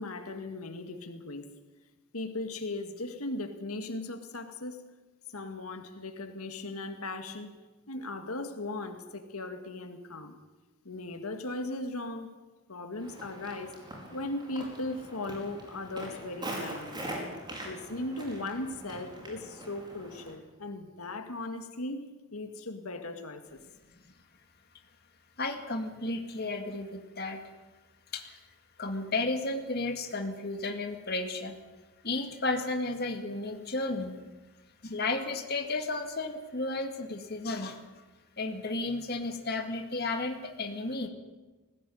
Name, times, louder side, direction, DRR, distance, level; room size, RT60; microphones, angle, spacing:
voice 1, 0.0-1.5 2.1-4.8 5.3-10.4 10.8-12.3 12.7-13.8 14.1-17.0 17.6-22.0 22.3-23.6, left 2 dB, 90° left, 7 dB, 2.0 m, -38 dB
Walk footsteps, 13.0-20.3, right 1 dB, 20° right, 4.9 m, -42 dB
voice 2, 25.4-27.4 28.1-28.4 28.8-31.6 32.0-34.2 34.8-37.8 38.4-41.1, left 2 dB, 45° left, 4 dB, 2.1 m, -33 dB
19.5 x 16.0 x 9.3 m, 1.2 s
head